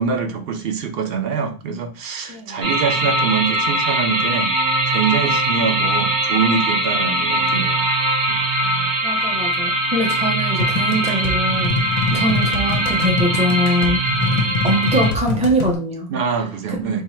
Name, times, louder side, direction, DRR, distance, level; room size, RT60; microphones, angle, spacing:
voice 1, 0.0-4.5 4.9-7.8 8.3-8.4 12.1-12.2 16.1-17.0, right 6 dB, 65° right, 5 dB, 0.8 m, -24 dB
voice 2, 2.3-2.7 8.6-14.0 14.6-16.1 16.7-17.0, equal, 10° right, 1 dB, 0.5 m, -23 dB
sound 1, 2.6-15.1, right 1 dB, 90° right, 1.1 m, -21 dB
sound 2, 10.6-15.8, left 3 dB, 50° left, 0.6 m, -24 dB
2.8 x 2.3 x 4.1 m, 0.35 s
omnidirectional pair, 1.1 m